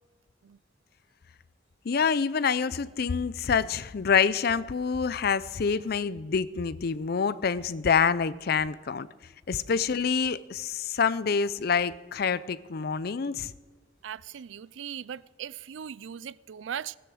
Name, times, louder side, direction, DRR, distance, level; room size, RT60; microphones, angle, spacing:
voice 1, 1.8-9.1 9.5-13.5, left 6 dB, 55° left, 0.5 m, -27 dB
voice 2, 14.0-17.0, right 8 dB, 80° right, 0.4 m, -39 dB
17.0 x 10.0 x 6.3 m
head